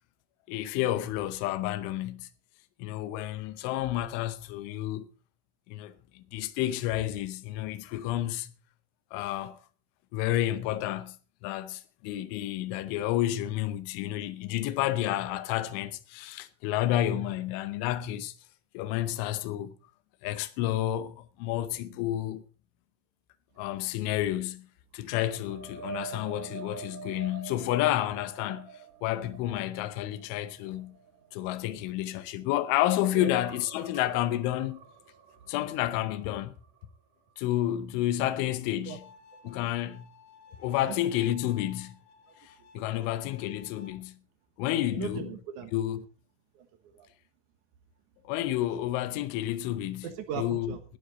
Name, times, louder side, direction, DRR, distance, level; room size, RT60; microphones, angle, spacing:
voice 1, 0.5-2.3 2.8-5.1 5.7-8.5 9.1-9.6 10.1-11.2 11.4-18.3 18.7-19.7 20.2-22.4 23.6-24.7 24.9-28.7 29.0-30.9 31.3-34.8 35.5-36.5 37.4-39.0 39.4-40.1 40.6-41.9 42.4-44.1 44.6-45.3 45.7-46.0 48.3-50.1 50.4-51.0, left 13 dB, 85° left, 3.3 m, -30 dB
sound 1, 25.3-32.7 33.0-36.9 37.3-37.5 40.8-40.9, right 6 dB, 50° right, 2.4 m, -47 dB
Bowed string instrument, 38.9-43.9, left 4 dB, 65° left, 3.4 m, -55 dB
voice 2, 42.6-43.1 44.9-45.7 46.5-47.1 48.4-48.7 50.0-50.8, right 8 dB, 80° right, 1.8 m, -39 dB
18.5 x 11.5 x 3.9 m
omnidirectional pair, 5.4 m